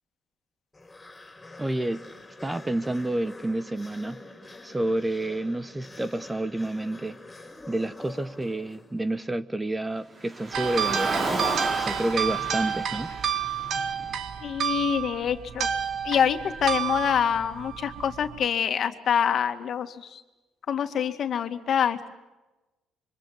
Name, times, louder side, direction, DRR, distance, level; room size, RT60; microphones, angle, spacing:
sound 1, 0.7-9.2, left 2 dB, 15° left, 4.6 m, -46 dB
voice 1, 1.6-2.0 2.4-4.2 4.6-7.2 7.7-11.5 11.8-13.1, right 1 dB, 10° right, 14 dB, 0.9 m, -29 dB
Car, 10.2-14.5, right 2 dB, 30° right, 4.8 m, -33 dB
sound 2, 10.5-18.4, right 8 dB, 55° right, 1.8 m, -30 dB
voice 2, 14.4-15.7 16.0-20.2 20.7-22.1, left 8 dB, 50° left, 7 dB, 2.1 m, -26 dB
27.0 x 24.5 x 7.9 m, 1.1 s
cardioid pair, 115°, 0 cm